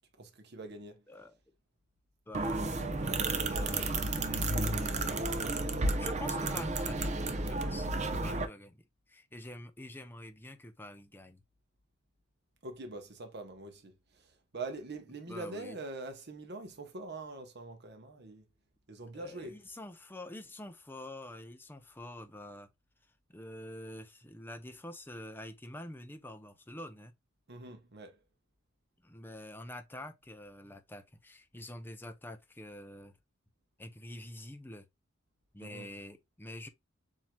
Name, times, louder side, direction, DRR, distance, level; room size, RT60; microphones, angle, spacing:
voice 1, 0.2-1.0 12.6-18.4 18.9-19.6 27.5-28.2 35.6-35.9, right 2 dB, 55° right, 1.0 m, -44 dB
voice 2, 1.1-1.4 2.3-4.9 5.9-11.4 15.3-15.8 19.1-22.7 23.3-27.1 29.0-33.2 33.8-34.9 35.5-36.7, left 1 dB, 10° left, 0.6 m, -47 dB
sound 1, 2.3-8.4, right 2 dB, 35° right, 0.6 m, -32 dB
7.4 x 2.8 x 2.3 m
head